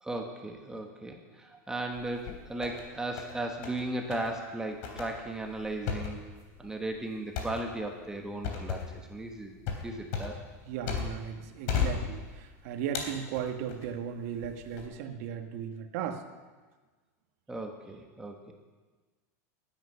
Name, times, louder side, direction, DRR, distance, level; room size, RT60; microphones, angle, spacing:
voice 1, 0.0-6.2 6.6-9.5 9.8-10.4 17.5-18.5, right 2 dB, 5° right, 3 dB, 1.3 m, -36 dB
sound 1, 1.9-2.8 3.2-3.8 4.1-4.3 4.8-11.3 11.7-12.5 12.9-13.9 14.4-14.8, left 6 dB, 60° left, 3.4 m, -35 dB
voice 2, 10.7-16.2, right 8 dB, 60° right, 6 dB, 1.6 m, -36 dB
19.5 x 9.4 x 5.7 m, 1.4 s
supercardioid pair, 145°, 9 cm